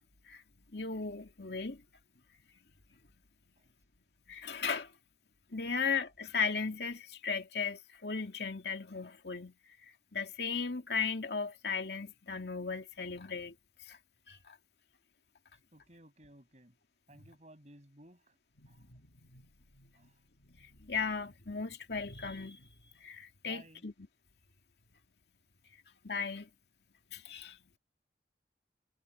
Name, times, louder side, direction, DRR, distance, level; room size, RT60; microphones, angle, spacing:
voice 1, 0.7-1.8 4.3-4.9 5.5-9.5 10.1-13.5 13.8-14.0 14.3-14.6 18.6-19.4 19.8-19.9 20.5-22.7 23.0-23.9 26.0-26.5 27.1-27.6, left 5 dB, 70° left, 2.3 m, -37 dB
voice 2, 15.7-16.7 17.1-18.4 18.7-18.9 20.0-20.2 23.4-23.9, right 1 dB, 40° right, 7.1 m, -57 dB
head